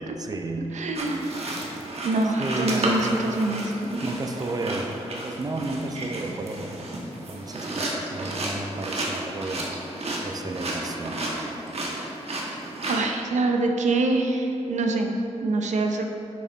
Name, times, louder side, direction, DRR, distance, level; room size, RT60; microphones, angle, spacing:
voice 1, 0.0-1.2 2.3-3.1 4.0-6.9 7.3-9.7 10.2-11.2, right 2 dB, 30° right, 4 dB, 0.6 m, -33 dB
voice 2, 0.7-1.6 2.0-4.0 12.9-16.2, right 2 dB, 85° right, 3 dB, 0.6 m, -25 dB
sound 1, 0.9-13.0, right 1 dB, 60° right, 1.2 m, -32 dB
7.3 x 5.9 x 4.0 m, 2.9 s
cardioid pair, 70°, 12 cm